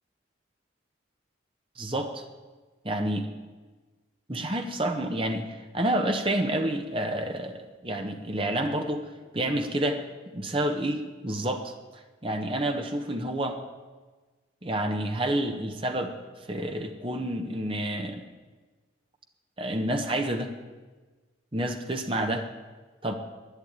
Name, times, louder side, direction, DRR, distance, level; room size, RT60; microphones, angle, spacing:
voice 1, 1.8-2.2 2.8-3.3 4.3-5.5 5.7-9.0 9.3-10.0 10.3-11.7 12.2-13.6 14.6-16.1 16.5-18.2 19.6-20.5 21.5-22.5 23.0-23.1, right 1 dB, 30° right, 5 dB, 1.1 m, -29 dB
11.5 x 10.0 x 8.9 m, 1.3 s
head